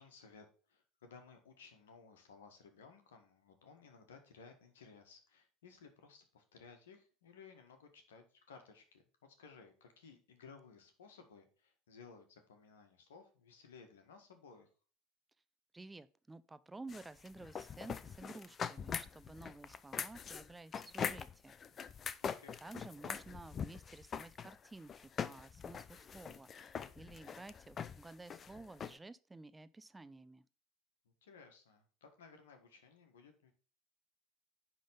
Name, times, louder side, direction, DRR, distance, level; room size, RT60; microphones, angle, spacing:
voice 1, 0.0-14.7 22.2-22.6 31.0-33.5, left 5 dB, 80° left, 1.6 m, -59 dB
voice 2, 15.7-21.6 22.6-30.5, right 2 dB, 15° right, 0.5 m, -53 dB
sound 1, 16.9-29.0, left 7 dB, 35° left, 0.6 m, -43 dB
10.0 x 3.8 x 5.3 m
hypercardioid pair, 70°, 0 cm